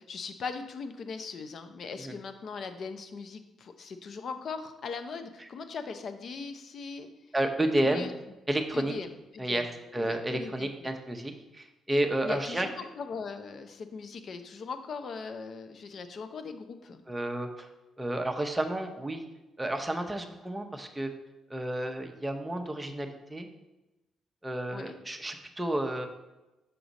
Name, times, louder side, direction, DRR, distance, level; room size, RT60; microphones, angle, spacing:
voice 1, 0.0-7.1 7.8-8.1 8.7-9.1 9.3-9.7 10.0-10.7 12.2-17.0 24.7-25.0, left 5 dB, 55° left, 8 dB, 0.6 m, -39 dB
voice 2, 7.3-8.1 8.5-8.9 9.4-9.7 9.9-12.7 17.1-17.7 18.0-19.2 19.6-21.1 21.5-23.5 24.4-26.1, right 1 dB, 10° right, 4 dB, 0.8 m, -31 dB
6.0 x 5.0 x 4.0 m, 1.0 s
cardioid pair, 90°, 0 cm